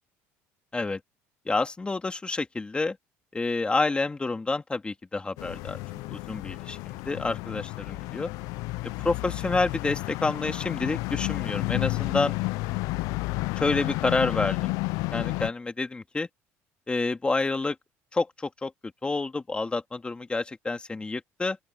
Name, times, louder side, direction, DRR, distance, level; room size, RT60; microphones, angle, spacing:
voice 1, 1.5-3.0 3.3-5.8 6.1-8.3 9.0-12.4 13.6-14.7 15.1-16.3 16.9-17.8 18.1-18.7 19.0-21.6, left 3 dB, 15° left, 2.3 m, -28 dB
sound 1, 5.4-15.5, left 23 dB, 75° left, 0.4 m, -31 dB
open air
supercardioid pair, 95°, 6 cm